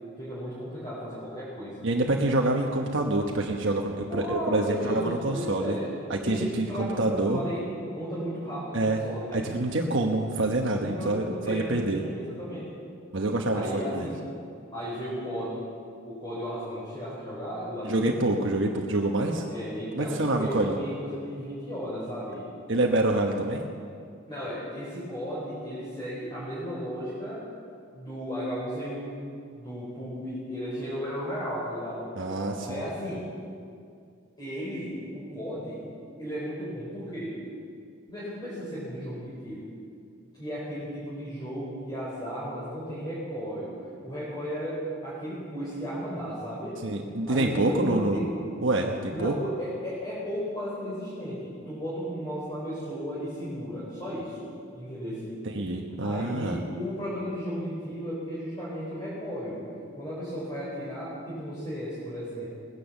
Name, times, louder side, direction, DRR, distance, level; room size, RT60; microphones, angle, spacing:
voice 1, 0.2-1.9 2.4-2.7 4.1-5.9 6.2-9.4 10.8-12.8 13.5-14.2 14.7-15.7 16.1-18.3 19.5-22.5 24.3-27.5 27.9-29.2 29.6-32.1 32.6-33.3 34.4-35.8 36.2-37.4 38.1-39.7 40.4-43.7 44.0-46.8 47.3-48.4 49.1-55.4 56.0-59.6 59.9-62.5, equal, 20° left, -9 dB, 4.1 m, -35 dB
voice 2, 1.8-5.7 6.1-7.4 8.7-9.0 9.3-12.0 13.1-14.1 17.8-19.4 19.9-20.7 22.7-23.6 32.2-32.8 46.8-48.2 48.6-49.4 55.4-56.6, right 2 dB, 65° right, 1 dB, 1.2 m, -26 dB
18.5 x 10.5 x 7.2 m, 2.3 s
head